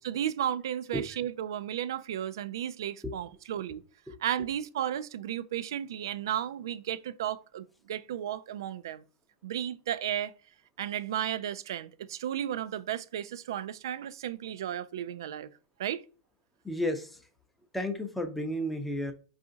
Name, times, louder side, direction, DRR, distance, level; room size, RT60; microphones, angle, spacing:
voice 1, 0.0-3.8 4.2-9.0 9.4-10.3 10.8-15.5 15.8-16.0, right 10 dB, 75° right, 0.4 m, -34 dB
voice 2, 16.6-17.2 17.7-19.1, left 1 dB, 5° left, 0.6 m, -32 dB
4.7 x 2.5 x 3.8 m
supercardioid pair, 150°, 2 cm